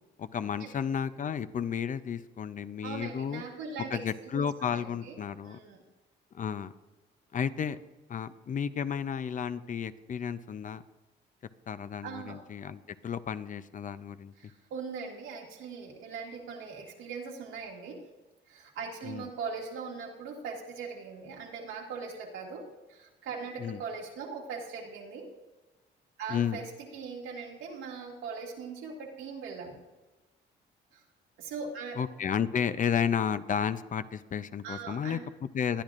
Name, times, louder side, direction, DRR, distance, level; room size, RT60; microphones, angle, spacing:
voice 1, 0.2-3.4 3.9-5.6 6.3-6.7 7.3-7.8 8.1-10.8 11.7-14.3 19.0-19.3 23.6-23.8 26.3-26.6 32.0-35.8, left 7 dB, 40° left, 13 dB, 0.5 m, -32 dB
voice 2, 2.8-4.0 4.3-5.2 5.4-5.8 12.0-12.4 14.4-18.0 18.5-25.3 26.2-26.7 26.9-29.8 30.9-31.0 31.4-32.0 34.6-35.2, right 5 dB, 90° right, -1 dB, 1.9 m, -40 dB
20.0 x 10.5 x 2.5 m, 1.2 s
cardioid pair, 90°, 20 cm